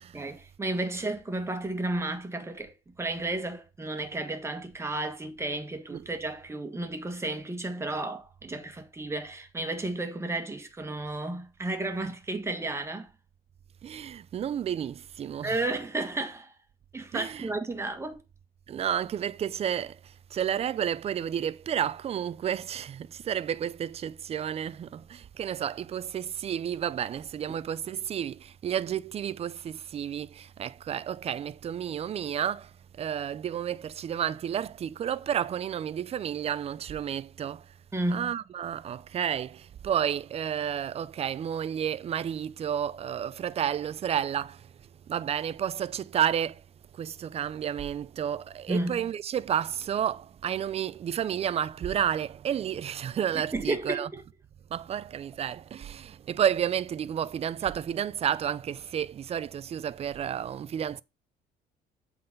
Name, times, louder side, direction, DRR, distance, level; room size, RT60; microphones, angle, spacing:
voice 1, 0.1-13.1 15.4-16.5 16.9-18.2 37.9-38.3 48.7-49.0 53.5-54.2, right 2 dB, 15° right, 1.5 m, -32 dB
voice 2, 13.8-15.6 17.1-17.5 18.7-37.8 38.1-46.6 46.9-54.1 54.7-61.0, right 9 dB, 35° right, 0.4 m, -31 dB
7.7 x 4.0 x 5.4 m
cardioid pair, 110°, 17 cm